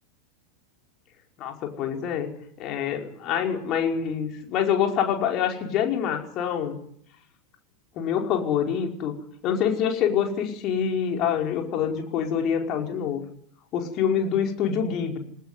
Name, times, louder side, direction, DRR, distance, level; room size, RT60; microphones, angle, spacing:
voice 1, 1.4-2.3 2.6-6.8 7.9-9.1 9.4-13.2 13.7-15.2, left 8 dB, 35° left, 2 dB, 5.1 m, -26 dB
23.0 x 19.5 x 9.7 m, 0.67 s
figure-of-eight pair, 90°, 0 cm